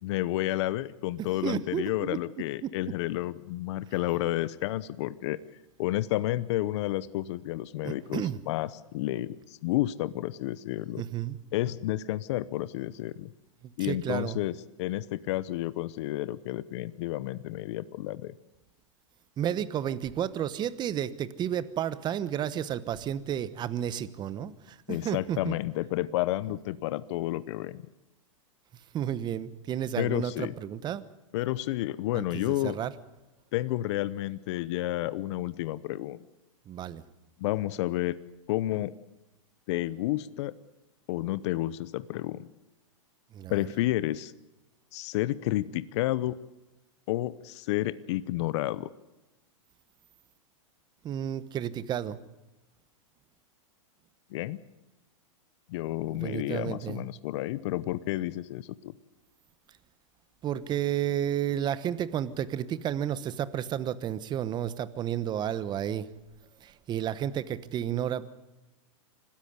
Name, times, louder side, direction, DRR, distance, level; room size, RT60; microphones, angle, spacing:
voice 1, 0.0-5.4 5.8-11.0 11.5-13.3 13.8-18.3 24.9-27.8 30.0-30.5 31.3-32.8 33.5-36.2 37.4-38.2 38.5-38.9 39.7-40.5 41.1-42.4 43.5-44.3 44.9-46.4 47.1-48.9 54.3-54.6 55.7-58.9, left 15 dB, 55° left, 17 dB, 0.8 m, -31 dB
voice 2, 1.2-2.2 2.6-2.7 7.8-8.4 11.0-11.4 13.8-14.4 19.4-25.6 28.9-31.0 32.1-32.9 36.7-37.0 43.3-43.7 51.0-52.2 56.2-57.0 60.4-66.1 66.6-68.3, right 10 dB, 25° right, 16 dB, 1.1 m, -32 dB
25.5 x 13.5 x 9.6 m, 1.0 s
hypercardioid pair, 130°, 17 cm